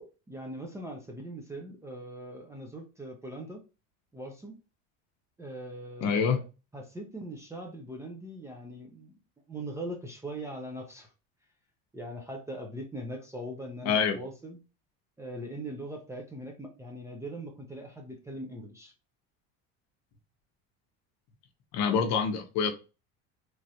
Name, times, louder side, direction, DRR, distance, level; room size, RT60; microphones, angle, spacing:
voice 1, 0.3-3.6 4.1-4.6 5.4-6.4 6.7-9.2 9.5-11.1 11.9-14.6 15.2-18.9, right 1 dB, 10° right, 2 dB, 0.4 m, -41 dB
voice 2, 6.0-6.4 13.9-14.2 21.7-22.7, left 6 dB, 55° left, 6 dB, 0.8 m, -26 dB
3.1 x 2.4 x 2.7 m, 0.30 s
supercardioid pair, 130°, 33 cm